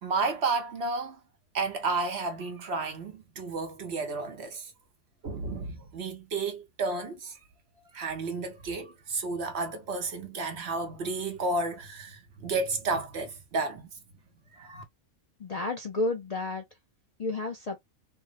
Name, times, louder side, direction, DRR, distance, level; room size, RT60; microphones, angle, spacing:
voice 1, 0.0-1.2 1.5-4.7 5.2-7.4 7.9-13.9 14.5-14.8, right 3 dB, 55° right, 1.0 m, -32 dB
voice 2, 15.4-16.6 17.2-17.8, left 2 dB, 60° left, 0.4 m, -31 dB
3.5 x 2.0 x 2.4 m
omnidirectional pair, 1.4 m